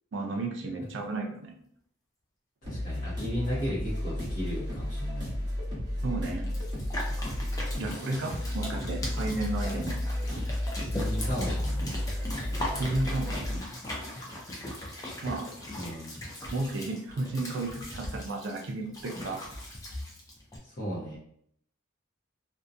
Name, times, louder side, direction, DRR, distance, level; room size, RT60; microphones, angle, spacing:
voice 1, 0.1-1.5 6.0-6.5 7.8-10.0 12.6-13.6 15.2-15.5 16.5-19.4, right 2 dB, 60° right, 1 dB, 0.4 m, -33 dB
voice 2, 2.6-5.3 10.9-11.9 12.2-12.9 15.8-16.3 20.6-21.2, equal, 45° left, -9 dB, 0.7 m, -35 dB
sound 1, 2.6-13.6, left 1 dB, 20° right, 0.8 m, -33 dB
sound 2, 6.3-20.6, left 1 dB, 15° left, 0.4 m, -39 dB
2.6 x 2.1 x 2.4 m, 0.66 s
head